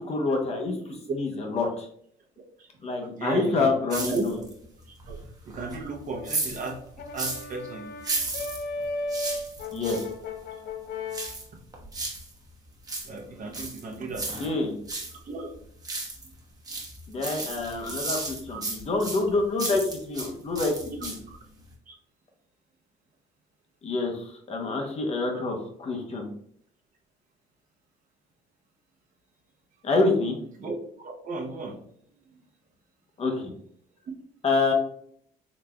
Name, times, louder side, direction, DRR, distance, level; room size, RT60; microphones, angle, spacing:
voice 1, 0.0-1.9 2.8-4.4 9.7-10.0 14.0-14.8 17.1-20.8 21.0-21.1 23.8-26.3 29.8-30.4 33.2-33.5 34.4-34.7, left 3 dB, 40° left, 2 dB, 0.8 m, -27 dB
voice 2, 3.1-4.2 5.1-5.2 5.5-6.8 7.1-7.9 13.0-14.3 15.3-15.5 17.4-17.5 18.5-18.6 21.9-22.0 25.3-25.4 30.6-30.7 31.0-31.8, right 3 dB, 50° right, 1 dB, 0.9 m, -34 dB
sound 1, 3.9-4.6 5.0-7.5 8.0-10.1 11.1-12.3 12.7-15.2 15.5-16.3 16.7-20.3 20.6-21.4 21.7-21.8, right 2 dB, 20° right, 0.9 m, -34 dB
Brass instrument, 5.9-11.4, left 2 dB, 65° left, 0.5 m, -36 dB
4.0 x 3.2 x 2.2 m, 0.65 s
cardioid pair, 110°, 17 cm